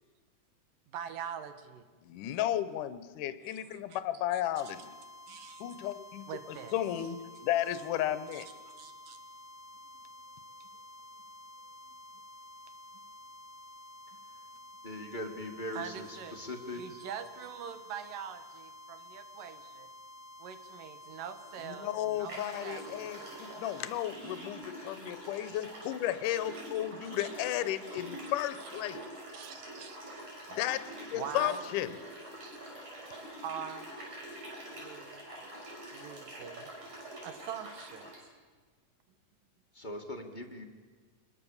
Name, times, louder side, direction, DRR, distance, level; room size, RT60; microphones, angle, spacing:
voice 1, 0.9-1.9 3.7-4.0 5.3-5.6 6.3-6.7 8.3-8.4 8.8-9.2 9.9-10.1 14.6-14.7 15.7-16.4 16.7-19.9 20.4-23.4 23.6-23.7 24.9-25.3 26.5-26.6 27.0-27.3 27.9-28.0 29.3-30.0 31.1-31.6 32.4-32.6 33.4-33.9 34.7-35.2 35.9-36.7 37.2-38.1, right 8 dB, 90° right, 9 dB, 3.1 m, -44 dB
voice 2, 2.0-5.0 5.6-7.2 7.4-8.5 21.6-29.0 30.5-31.9, left 12 dB, 80° left, 12 dB, 2.4 m, -34 dB
sound 1, 4.5-24.1, left 1 dB, 30° right, 0.4 m, -51 dB
voice 3, 14.8-16.8 39.7-40.6, left 1 dB, 20° left, 2 dB, 1.7 m, -40 dB
sound 2, 21.5-21.6 22.3-38.2, right 1 dB, 55° right, 6.9 m, -46 dB
25.5 x 21.5 x 7.2 m, 1.4 s
omnidirectional pair, 3.8 m